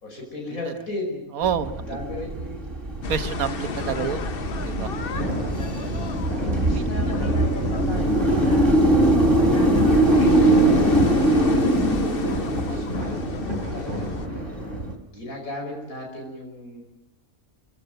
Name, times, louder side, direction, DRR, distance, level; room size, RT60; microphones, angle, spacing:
voice 1, 0.0-1.3 1.8-2.6 6.4-13.4 13.7-14.7 15.1-16.8, left 1 dB, 75° left, 1 dB, 5.7 m, -37 dB
voice 2, 1.3-1.8 3.1-4.3 4.6-4.9 6.7-6.8 12.7-13.1 13.6-14.0, right 8 dB, 80° right, 9 dB, 1.6 m, -29 dB
sound 1, 1.4-14.9, right 1 dB, 40° right, 3.4 m, -22 dB
sound 2, 3.0-14.3, left 5 dB, 45° left, 1.1 m, -34 dB
sound 3, 5.0-14.8, equal, 30° left, 8.1 m, -34 dB
28.5 x 15.5 x 9.3 m, 0.89 s
omnidirectional pair, 1.5 m